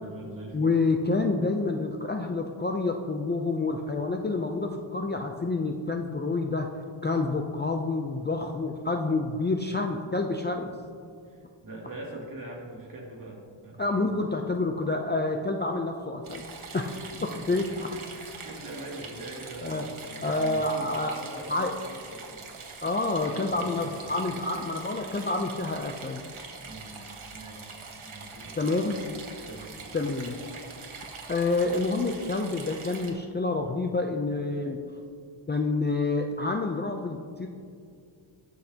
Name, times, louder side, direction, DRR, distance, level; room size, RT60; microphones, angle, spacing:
voice 1, 0.0-0.7 11.2-14.0 16.9-17.0 17.3-17.4 17.7-22.5 23.3-24.0 26.6-27.7 27.9-28.7 29.4-29.9, right 1 dB, 40° right, -3 dB, 2.4 m, -43 dB
voice 2, 0.5-6.7 7.0-10.7 13.8-16.5 16.7-17.0 17.2-17.9 19.6-19.9 20.2-21.1 21.5-21.7 22.8-26.2 28.6-28.9 29.9-30.4 31.3-34.8 35.5-37.5, left 3 dB, 25° left, 3 dB, 0.4 m, -28 dB
sound 1, 16.2-33.1, right 4 dB, 80° right, 1.4 m, -43 dB
19.5 x 6.4 x 2.8 m, 2.4 s
wide cardioid pair, 130°, 49 cm